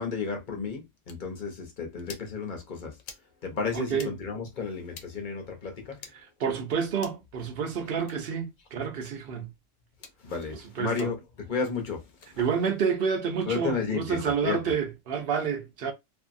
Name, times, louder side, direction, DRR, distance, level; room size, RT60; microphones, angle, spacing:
voice 1, 0.0-3.0 3.4-6.1 10.2-12.4 13.5-14.6, left 5 dB, 45° left, 0.9 m, -33 dB
sound 1, 1.1-1.2 2.0-2.3 3.0-3.3 3.9-4.1 4.9-5.1 6.0-6.1 7.0-7.3 8.0-8.2 9.0-9.1 9.9-10.2 11.0-11.1 12.1-12.3, left 6 dB, 85° left, 1.1 m, -46 dB
voice 2, 3.7-4.1 6.4-9.5 10.8-11.1 12.4-15.9, right 6 dB, 55° right, 0.7 m, -29 dB
2.9 x 2.6 x 2.5 m
omnidirectional pair, 1.3 m